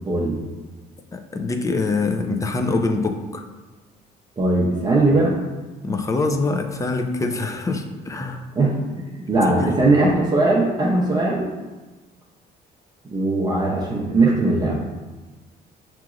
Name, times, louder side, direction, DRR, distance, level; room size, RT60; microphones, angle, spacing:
voice 1, 0.0-0.4 4.4-5.4 8.5-11.5 13.1-14.8, right 2 dB, 25° right, -3 dB, 0.6 m, -19 dB
voice 2, 1.1-3.4 5.8-8.4 9.5-9.8, left 3 dB, 20° left, 5 dB, 0.4 m, -24 dB
5.9 x 2.9 x 2.4 m, 1.2 s
cardioid pair, 110°, 17 cm